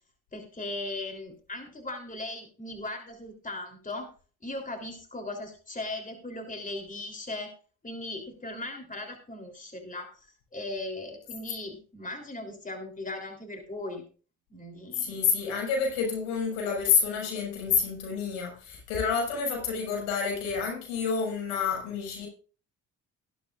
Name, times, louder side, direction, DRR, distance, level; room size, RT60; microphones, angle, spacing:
voice 1, 0.3-4.1 4.4-7.5 7.8-14.0 14.5-15.2, left 2 dB, 20° left, 3.4 m, -38 dB
voice 2, 15.0-22.3, left 6 dB, 85° left, 5.8 m, -28 dB
15.5 x 12.0 x 2.5 m
hypercardioid pair, 60°, 39 cm